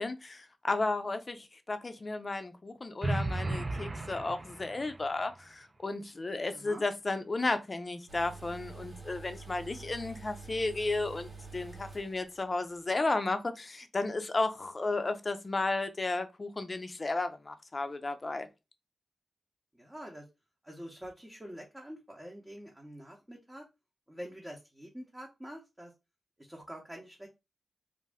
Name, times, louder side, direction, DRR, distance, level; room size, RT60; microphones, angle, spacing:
voice 1, 0.0-18.5, left 3 dB, 40° left, 0.5 m, -33 dB
sound 1, 3.0-5.1, right 2 dB, 35° right, 0.3 m, -34 dB
voice 2, 6.5-6.8 19.7-20.2 20.6-23.6 24.1-25.9 26.4-27.3, equal, 15° right, 0.9 m, -46 dB
sound 2, 8.1-12.5 12.8-12.9, right 4 dB, 65° right, 1.4 m, -47 dB
2.5 x 2.1 x 3.4 m
cardioid pair, 50°, 0 cm